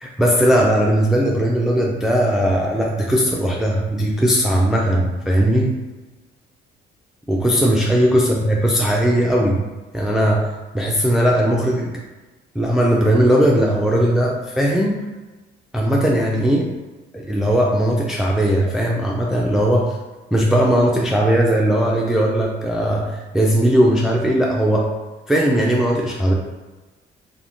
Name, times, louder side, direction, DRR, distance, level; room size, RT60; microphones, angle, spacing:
voice 1, 0.0-5.7 7.3-9.6 9.9-10.4 10.7-11.9 12.6-15.0 15.7-16.7 17.1-20.0 20.3-24.9 25.3-26.3, equal, ahead, -2 dB, 0.3 m, -18 dB
2.4 x 2.1 x 3.5 m, 1.2 s
cardioid pair, 90°, 20 cm